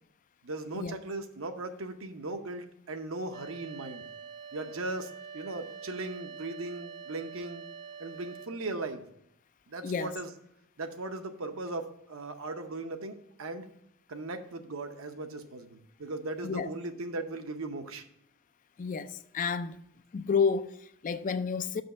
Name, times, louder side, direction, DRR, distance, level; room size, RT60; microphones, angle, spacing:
voice 1, 0.4-4.1 4.5-7.6 8.0-9.1 9.7-10.3 10.8-13.7 14.1-18.1, right 2 dB, 65° right, 0.8 m, -38 dB
sound 1, 3.3-8.5, right 6 dB, 20° right, 0.5 m, -45 dB
voice 2, 9.8-10.2 16.4-16.7 18.8-19.8 20.1-21.8, left 5 dB, 35° left, 0.3 m, -30 dB
6.1 x 5.3 x 6.6 m
head